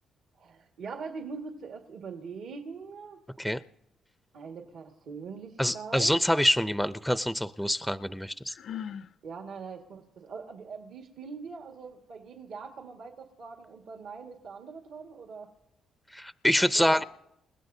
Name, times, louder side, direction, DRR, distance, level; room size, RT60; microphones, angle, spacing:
voice 1, 0.4-3.2 4.3-6.2 9.2-15.5 16.7-17.0, right 5 dB, 75° right, 3 dB, 1.7 m, -42 dB
voice 2, 5.6-8.5 16.1-17.0, equal, ahead, 13 dB, 0.5 m, -26 dB
Sigh, 8.5-9.1, left 9 dB, 60° left, 0.5 m, -38 dB
29.0 x 16.5 x 2.7 m, 0.81 s
cardioid pair, 90°, 0 cm